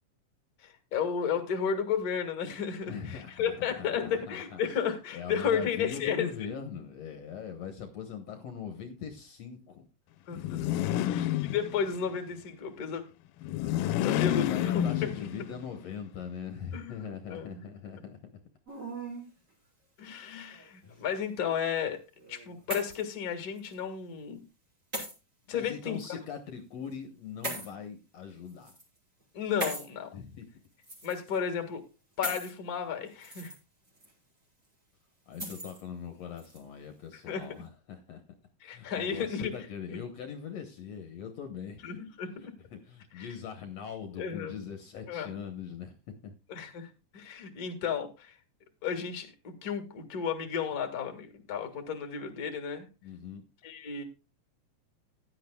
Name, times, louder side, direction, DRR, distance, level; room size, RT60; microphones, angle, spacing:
voice 1, 0.6-6.5 10.3-10.7 11.0-13.0 14.0-15.1 16.7-17.6 20.0-22.0 22.3-24.4 25.5-26.2 29.3-30.1 31.0-31.8 32.2-33.5 37.3-37.5 38.6-40.0 41.8-42.4 43.1-43.3 44.1-44.5 45.1-45.4 46.5-48.3 48.8-52.9 53.6-54.0, left 7 dB, 35° left, 6 dB, 1.6 m, -33 dB
voice 2, 2.9-4.6 5.1-9.9 10.8-11.3 14.1-18.3 20.8-21.0 25.5-28.7 30.1-30.5 35.3-38.2 38.6-42.0 42.7-46.3 53.0-53.4, left 7 dB, 60° left, 6 dB, 2.0 m, -41 dB
sound 1, 10.3-12.1 13.4-15.6, left 13 dB, 90° left, 2.3 m, -29 dB
sound 2, 18.7-19.3 20.2-20.9 22.2-23.1 23.6-23.7 24.9-25.1 26.0-26.1 27.4-27.7 28.5-28.8 29.6-29.9 30.8-31.4 32.2-32.5 33.1-33.6 34.0-34.1 35.3-35.8 36.4-36.6, right 1 dB, 20° right, 4.7 m, -38 dB
16.0 x 11.0 x 2.2 m, 0.30 s
omnidirectional pair, 3.8 m